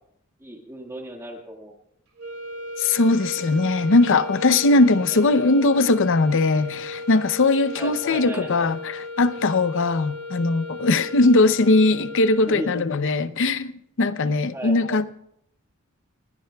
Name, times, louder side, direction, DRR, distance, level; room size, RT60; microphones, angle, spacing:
voice 1, 0.4-1.7 5.1-5.2 7.8-8.7 12.5-12.7 14.5-14.8, right 1 dB, 15° right, 1.8 m, -35 dB
sound 1, 2.2-13.1, left 2 dB, 80° right, 2.8 m, -36 dB
voice 2, 2.8-15.1, left 2 dB, 60° left, 0.7 m, -20 dB
30.0 x 17.0 x 2.3 m
head